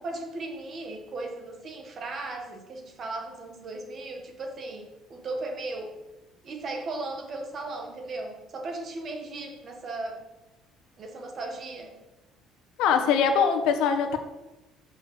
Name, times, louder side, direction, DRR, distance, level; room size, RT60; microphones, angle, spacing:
voice 1, 0.0-6.0 6.4-10.2 11.0-12.0, right 2 dB, 30° right, 4 dB, 1.7 m, -36 dB
voice 2, 12.8-14.2, left 6 dB, 70° left, 6 dB, 1.4 m, -22 dB
10.0 x 6.6 x 6.9 m, 1.0 s
cardioid pair, 180°, 0 cm